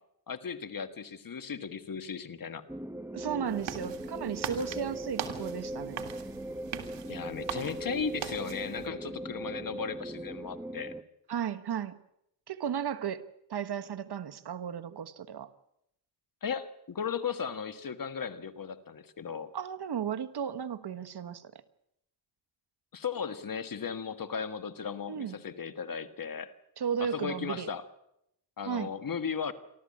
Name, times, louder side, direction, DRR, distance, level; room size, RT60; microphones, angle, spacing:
voice 1, 0.3-2.7 7.1-10.9 16.4-19.5 22.9-26.5 27.0-27.9 28.6-29.5, left 6 dB, 50° left, 11 dB, 1.6 m, -36 dB
sound 1, 2.7-11.0, right 1 dB, 5° right, 1.1 m, -39 dB
voice 2, 3.1-6.1 11.3-12.0 12.5-13.2 13.5-15.5 19.5-21.6 25.1-25.3 26.8-27.7 28.7-28.9, right 8 dB, 65° right, 10 dB, 1.3 m, -34 dB
sound 2, 3.5-8.9, right 9 dB, 80° right, 2.1 m, -41 dB
28.5 x 12.5 x 8.6 m, 0.78 s
cardioid pair, 80°, 43 cm